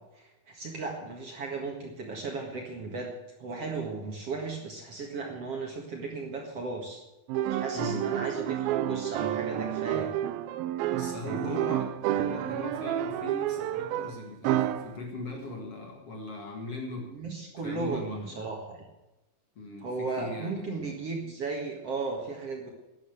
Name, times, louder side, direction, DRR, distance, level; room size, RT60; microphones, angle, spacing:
voice 1, 0.1-3.1 3.4-7.0 7.5-10.1 11.2-11.6 17.1-18.8 19.8-22.7, right 4 dB, 50° right, 1 dB, 2.3 m, -35 dB
sound 1, 7.3-15.0, right 12 dB, 80° right, 2.5 m, -30 dB
voice 2, 7.7-8.2 10.9-17.1 17.6-18.3 19.6-20.9, left 2 dB, 45° left, 1 dB, 2.5 m, -39 dB
13.0 x 9.9 x 8.0 m, 1.0 s
omnidirectional pair, 4.4 m